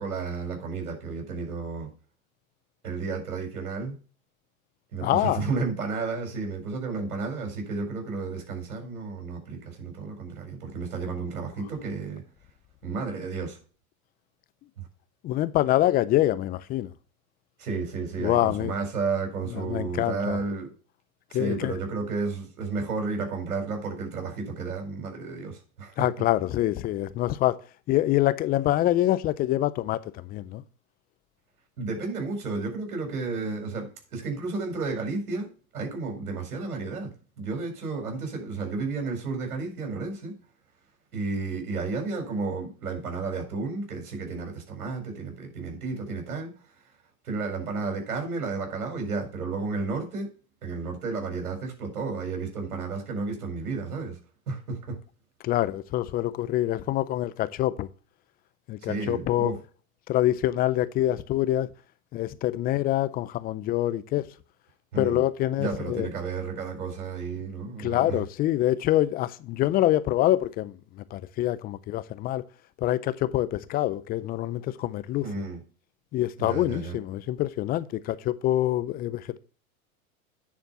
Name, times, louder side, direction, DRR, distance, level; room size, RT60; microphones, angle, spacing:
voice 1, 0.0-1.9 2.8-4.0 4.9-12.2 12.8-13.6 17.6-20.7 21.3-26.1 31.8-35.5 35.7-40.3 41.1-46.5 47.2-50.3 50.6-54.2 54.5-55.0 58.8-59.6 64.9-65.2 65.6-68.2 75.2-75.6 76.4-77.0, right 4 dB, 85° right, 4.5 m, -32 dB
voice 2, 5.0-5.5 15.2-16.9 18.2-18.7 19.5-20.4 21.3-21.8 26.0-27.6 27.9-30.6 55.4-57.9 58.7-59.5 60.1-61.7 62.1-64.2 65.0-66.1 67.8-72.4 72.8-75.2 76.1-79.4, left 14 dB, 20° left, 0.4 m, -25 dB
9.5 x 4.5 x 5.4 m
hypercardioid pair, 115°, 43 cm